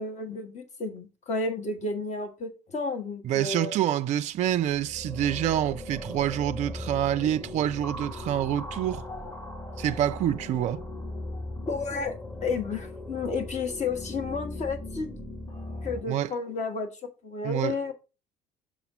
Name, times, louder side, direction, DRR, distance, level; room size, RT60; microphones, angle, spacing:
voice 1, 0.0-3.7 11.7-12.1 12.4-15.1 15.8-16.9 17.2-17.9, left 4 dB, 35° left, 1.5 m, -32 dB
voice 2, 3.2-9.0 9.8-10.8 16.1-16.3 17.4-17.8, right 11 dB, 35° right, 0.4 m, -27 dB
sound 1, 4.4-16.0, left 1 dB, 15° left, 1.8 m, -38 dB
7.1 x 3.7 x 4.8 m
figure-of-eight pair, 55°, 20 cm